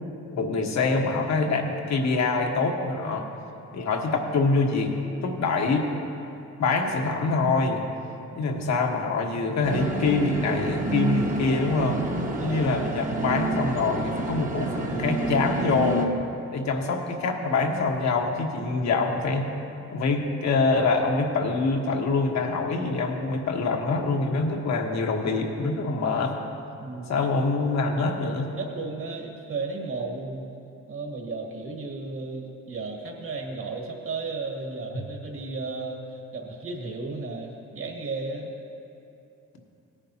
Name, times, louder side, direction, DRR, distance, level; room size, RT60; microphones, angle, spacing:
voice 1, 0.3-3.2 3.7-4.9 5.2-5.9 6.6-7.8 8.3-12.0 12.4-16.1 16.5-19.5 19.9-26.4 27.1-28.5, left 3 dB, 65° left, 2 dB, 1.4 m, -25 dB
sound 1, 9.6-16.1, right 2 dB, 25° right, 1.2 m, -28 dB
voice 2, 26.8-27.3 28.0-38.5, right 3 dB, 45° right, 1 dB, 1.9 m, -34 dB
17.5 x 10.0 x 2.9 m, 2.7 s
cardioid pair, 90°, 30 cm